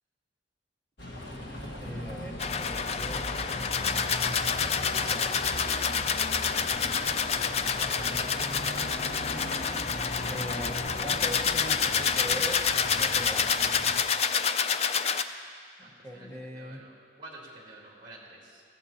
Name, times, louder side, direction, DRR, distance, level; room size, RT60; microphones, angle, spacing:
Bus, 1.0-14.0, equal, 65° left, 1.5 m, -38 dB
voice 1, 1.8-3.3 5.1-5.3 10.3-13.8 15.8-16.8, equal, 15° left, 0 dB, 1.2 m, -40 dB
sound 1, 2.4-15.2, left 6 dB, 35° left, 0.3 m, -28 dB
voice 2, 7.7-8.9 15.8-18.6, right 2 dB, 25° right, -4 dB, 2.8 m, -49 dB
21.0 x 15.0 x 2.9 m, 2.2 s
head